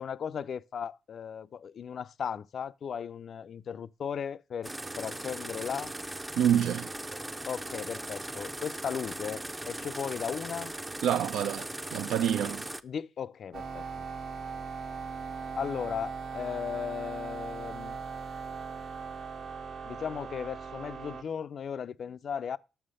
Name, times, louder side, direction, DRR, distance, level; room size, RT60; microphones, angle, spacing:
voice 1, 0.0-5.9 7.5-10.7 12.8-13.8 15.6-18.0 19.8-22.6, left 7 dB, 55° left, 0.4 m, -36 dB
sound 1, 4.6-12.8, right 1 dB, 10° right, 0.5 m, -39 dB
voice 2, 6.4-6.9 11.0-12.6, right 10 dB, 80° right, 0.4 m, -27 dB
sound 2, 13.5-21.2, right 5 dB, 65° right, 1.4 m, -39 dB
5.9 x 5.7 x 6.4 m
cardioid pair, 90°, 0 cm